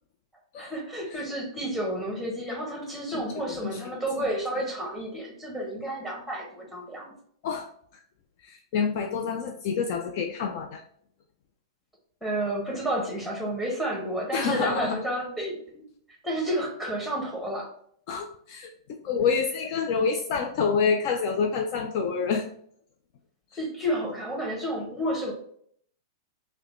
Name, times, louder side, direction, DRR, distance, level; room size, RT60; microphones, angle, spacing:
voice 1, 0.6-7.1 12.2-15.8 16.2-17.7 23.6-25.3, right 1 dB, ahead, -2 dB, 1.4 m, -31 dB
voice 2, 3.1-4.3 7.4-7.7 8.4-10.8 14.3-15.0 18.1-22.5, left 5 dB, 45° left, 3 dB, 0.4 m, -28 dB
4.7 x 2.2 x 3.1 m, 0.63 s
figure-of-eight pair, 105°, 2 cm